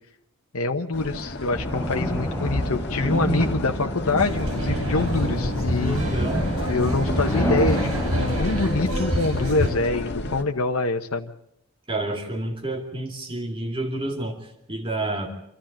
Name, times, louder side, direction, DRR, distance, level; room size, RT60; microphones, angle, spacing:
voice 1, 0.5-6.0 6.7-11.3, left 3 dB, 80° left, 3 dB, 1.1 m, -25 dB
sound 1, 0.9-10.4, left 2 dB, 50° left, 1.8 m, -34 dB
sound 2, 1.5-8.9, equal, 10° left, 3.4 m, -28 dB
voice 2, 3.0-3.5 5.8-6.5 11.9-15.3, right 2 dB, 25° right, 1 dB, 2.5 m, -29 dB
sound 3, 4.2-9.7, equal, 85° right, 7.0 m, -27 dB
26.5 x 13.0 x 8.8 m, 0.80 s
head